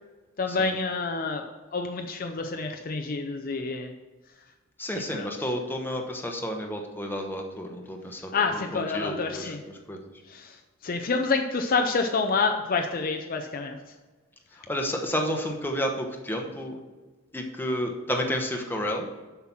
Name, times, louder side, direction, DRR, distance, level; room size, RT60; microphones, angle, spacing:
voice 1, 0.4-3.9 5.1-5.3 8.3-9.6 10.3-10.5 10.8-13.8, left 4 dB, 45° left, 5 dB, 0.5 m, -28 dB
voice 2, 4.8-10.0 14.7-16.8 17.3-19.1, equal, 10° left, 2 dB, 1.0 m, -31 dB
7.4 x 5.8 x 6.0 m, 1.3 s
head